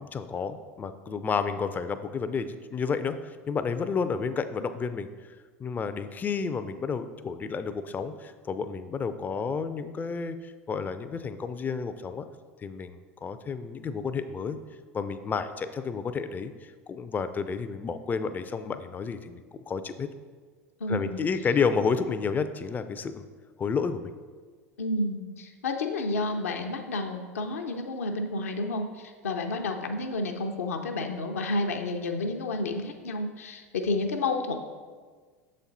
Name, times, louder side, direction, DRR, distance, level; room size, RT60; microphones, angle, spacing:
voice 1, 0.0-5.1 5.6-12.3 12.6-14.6 14.9-20.1 20.9-23.3 23.6-24.1, left 5 dB, 25° left, 11 dB, 0.4 m, -31 dB
voice 2, 20.8-21.2 24.8-34.6, left 2 dB, 75° left, 4 dB, 0.6 m, -30 dB
6.9 x 4.3 x 4.0 m, 1.5 s
figure-of-eight pair, 80°, 8 cm